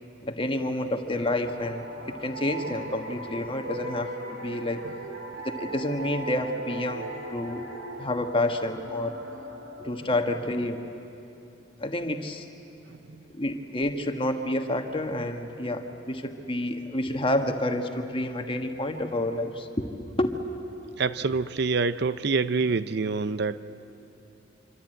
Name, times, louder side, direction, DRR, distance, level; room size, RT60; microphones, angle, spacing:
voice 1, 0.2-4.8 5.4-7.6 8.0-9.2 9.8-10.8 11.8-12.5 13.3-19.9 20.2-20.4, left 1 dB, 25° left, 5 dB, 1.5 m, -29 dB
sound 1, 1.2-10.6, right 1 dB, 85° right, 4.0 m, -39 dB
voice 2, 12.9-13.2 21.0-23.6, right 4 dB, 55° right, 14 dB, 0.6 m, -26 dB
26.0 x 25.0 x 9.2 m, 2.7 s
head